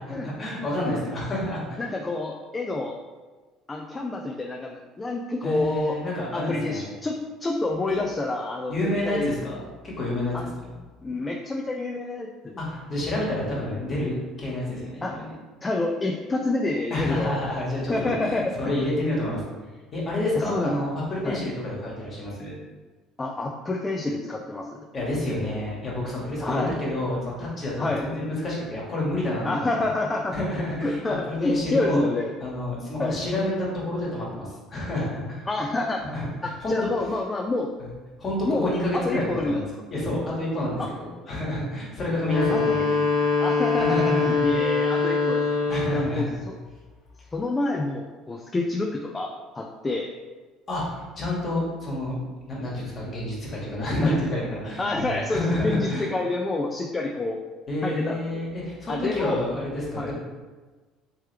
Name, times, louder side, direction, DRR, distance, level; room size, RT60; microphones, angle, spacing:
voice 1, 0.0-1.8 5.4-6.9 7.9-8.0 8.7-9.6 9.8-10.7 12.6-15.3 16.9-19.4 19.9-22.6 24.9-29.8 30.3-32.0 32.4-35.5 36.1-36.7 37.8-37.9 38.2-42.8 43.8-44.5 45.7-46.4 50.7-52.1 52.5-56.1 57.7-60.1, left 1 dB, 40° left, -4 dB, 1.5 m, -29 dB
voice 2, 1.8-3.0 3.7-6.0 6.3-9.3 10.3-10.4 11.0-12.6 15.0-15.2 15.6-17.5 17.9-18.8 20.4-20.9 21.2-21.4 23.2-24.9 26.4-26.7 27.8-28.0 29.4-30.4 30.8-32.3 33.0-33.2 35.5-36.1 36.4-37.7 38.4-39.6 40.8-40.9 42.5-42.9 43.4-45.4 45.9-46.6 47.3-50.1 54.0-54.2 54.8-57.4 57.8-58.4 58.9-59.5 60.0-60.1, left 2 dB, 25° left, 1 dB, 0.4 m, -28 dB
sound 1, 42.1-46.2, left 4 dB, 75° left, 1.1 m, -23 dB
3.3 x 3.1 x 3.3 m, 1.3 s
supercardioid pair, 75°, 0 cm